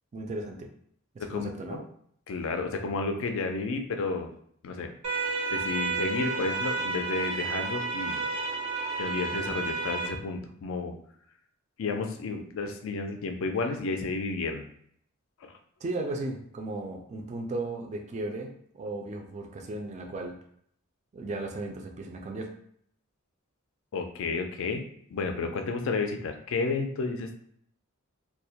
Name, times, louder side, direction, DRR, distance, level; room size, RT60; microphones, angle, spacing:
voice 1, 0.1-0.7 1.1-1.8 15.8-20.4 21.1-22.5, right 2 dB, 35° right, 3 dB, 0.3 m, -35 dB
voice 2, 1.2-1.8 2.3-4.3 4.6-4.9 5.5-8.2 9.0-10.9 11.8-14.7 15.4-15.5 23.9-24.8 25.1-27.3, left 4 dB, 70° left, 5 dB, 0.4 m, -31 dB
sound 1, 5.0-10.1, right 4 dB, 80° right, 0.6 m, -31 dB
2.2 x 2.0 x 2.7 m, 0.65 s
head